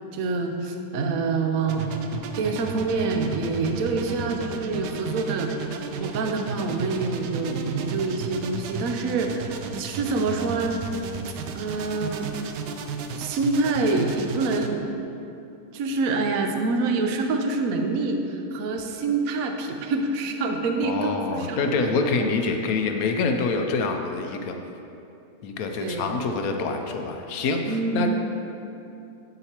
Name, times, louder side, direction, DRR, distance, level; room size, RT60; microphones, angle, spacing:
voice 1, 0.1-1.9 2.4-5.6 6.0-10.8 11.5-12.3 13.1-14.8 15.7-21.6 22.1-22.3 25.8-26.1 27.6-28.1, right 3 dB, 65° right, 4 dB, 1.0 m, -26 dB
sound 1, 1.7-14.7, right 5 dB, 85° right, 1.2 m, -34 dB
voice 2, 20.8-24.5 25.4-28.1, left 4 dB, 70° left, 4 dB, 0.9 m, -26 dB
7.9 x 7.8 x 2.9 m, 2.7 s
omnidirectional pair, 1.8 m